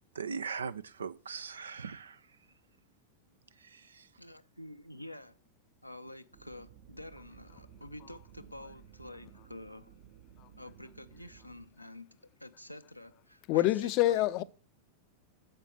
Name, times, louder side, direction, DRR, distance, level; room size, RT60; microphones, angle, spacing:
voice 1, 0.1-2.2 3.6-4.1, right 6 dB, 70° right, 0.5 m, -40 dB
voice 2, 4.2-5.4 5.8-9.9 10.6-14.2, left 1 dB, 90° left, 0.6 m, -48 dB
sound 1, 6.3-11.7, right 9 dB, 50° right, 0.9 m, -56 dB
voice 3, 13.5-14.4, left 15 dB, 40° left, 0.5 m, -26 dB
9.0 x 6.7 x 6.1 m
figure-of-eight pair, 90°, 0 cm